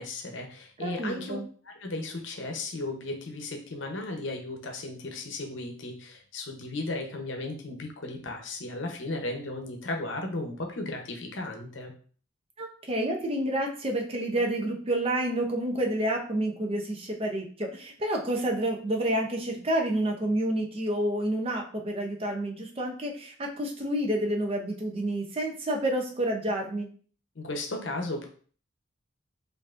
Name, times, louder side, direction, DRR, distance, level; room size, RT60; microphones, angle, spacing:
voice 1, 0.0-1.4 1.6-11.9 27.4-28.3, left 2 dB, 65° left, 2 dB, 0.7 m, -35 dB
voice 2, 0.8-1.4 12.6-26.9, right 1 dB, 30° right, 1 dB, 0.5 m, -29 dB
4.6 x 2.6 x 2.4 m, 0.43 s
head